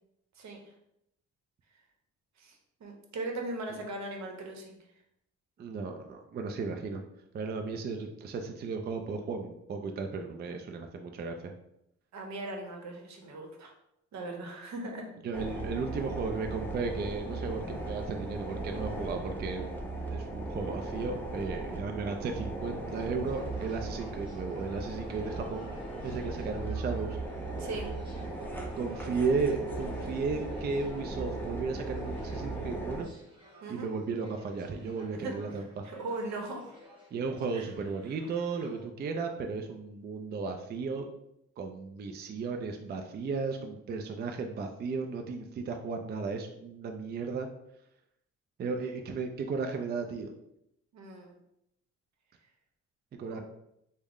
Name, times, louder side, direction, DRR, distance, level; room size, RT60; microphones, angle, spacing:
voice 1, 0.4-0.7 2.4-4.8 12.1-13.7 14.1-15.2 27.6-27.9 33.6-33.9 35.1-36.8 37.5-37.7 50.9-51.3 53.3-53.4, right 2 dB, 65° right, 2 dB, 0.9 m, -39 dB
voice 2, 5.6-7.0 7.3-11.5 15.2-19.8 20.1-25.7 26.0-27.2 28.8-33.1 33.7-35.8 37.1-41.1 41.6-47.5 48.6-50.3 53.2-53.4, right 4 dB, 35° right, 4 dB, 0.4 m, -35 dB
sound 1, 15.3-33.0, right 2 dB, 5° left, 0.7 m, -37 dB
sound 2, 23.2-38.8, equal, 15° right, 1.2 m, -57 dB
3.5 x 2.1 x 3.5 m, 0.80 s
cardioid pair, 90°, 30 cm